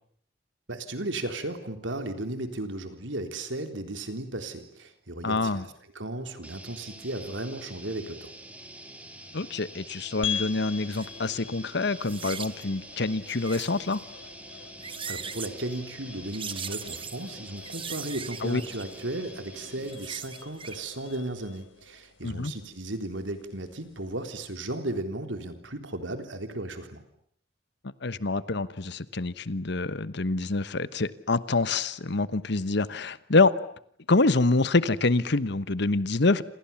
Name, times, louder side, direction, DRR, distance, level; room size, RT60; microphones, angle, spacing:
voice 1, 0.7-5.6 6.0-8.3 15.1-27.0, right 1 dB, 75° right, 7 dB, 3.8 m, -35 dB
voice 2, 5.2-5.6 9.3-14.0 18.4-18.6 22.2-22.5 28.0-33.5 34.1-36.4, left 3 dB, 65° left, 15 dB, 1.1 m, -26 dB
sound 1, 6.4-20.1, right 1 dB, 10° right, 3.6 m, -46 dB
sound 2, 10.2-24.8, left 9 dB, 85° left, 1.7 m, -43 dB
sound 3, 10.9-11.1 12.0-12.6 13.3-14.0 14.6-15.6 16.3-17.3 17.6-19.0 19.7-20.9 21.1-21.2, right 7 dB, 30° right, 1.1 m, -39 dB
28.0 x 27.5 x 7.2 m, 0.68 s
head